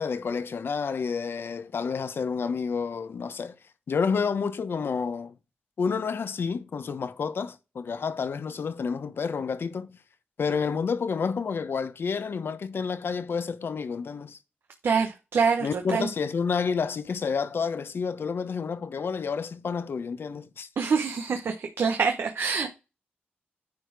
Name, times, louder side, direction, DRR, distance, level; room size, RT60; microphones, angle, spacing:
voice 1, 0.0-3.5 3.9-5.3 5.8-10.0 10.4-14.4 15.6-20.7, left 5 dB, 70° left, 0.9 m, -29 dB
voice 2, 14.8-15.7 15.9-16.1 20.8-22.7, right 5 dB, 75° right, 1.0 m, -25 dB
9.8 x 4.2 x 4.8 m
cardioid pair, 65°, 4 cm